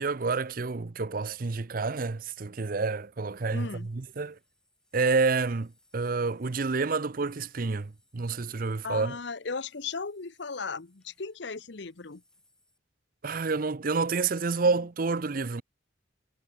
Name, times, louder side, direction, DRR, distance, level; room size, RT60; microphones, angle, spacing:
voice 1, 0.0-4.4 4.9-9.2 13.2-15.6, right 4 dB, 45° right, 0.6 m, -29 dB
sound 1, 2.9-12.8, left 1 dB, 5° left, 6.0 m, -69 dB
voice 2, 3.5-3.9 8.8-12.2, left 4 dB, 60° left, 0.9 m, -36 dB
head